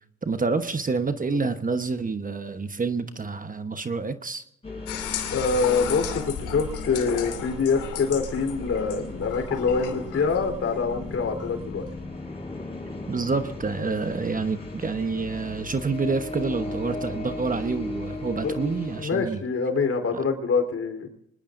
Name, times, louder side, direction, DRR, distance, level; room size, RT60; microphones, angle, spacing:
voice 1, 0.2-4.5 13.1-19.4, right 4 dB, 25° right, 9 dB, 1.1 m, -28 dB
sound 1, 4.6-19.1, left 2 dB, 20° left, 7.1 m, -37 dB
sound 2, 4.9-12.0, left 8 dB, 85° left, 2.7 m, -35 dB
voice 2, 5.3-11.9 18.4-18.5 19.0-21.1, left 5 dB, 50° left, 5 dB, 3.8 m, -25 dB
25.0 x 20.5 x 2.6 m, 0.75 s
cardioid pair, 90°, 30 cm